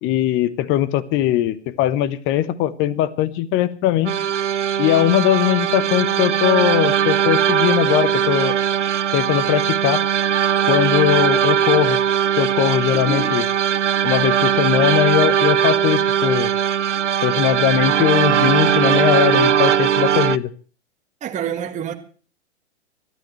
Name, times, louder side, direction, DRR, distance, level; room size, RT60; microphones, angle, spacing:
voice 1, 0.0-4.1 4.8-8.6 9.1-10.0 10.7-12.0 12.4-13.4 14.0-16.5 17.2-20.5, left 12 dB, 35° left, 1.2 m, -20 dB
sound 1, 4.0-20.4, right 9 dB, 90° right, 0.6 m, -19 dB
voice 2, 12.9-13.3 21.2-21.9, right 8 dB, 20° right, 1.6 m, -27 dB
24.5 x 12.5 x 3.2 m
hypercardioid pair, 110°, 35 cm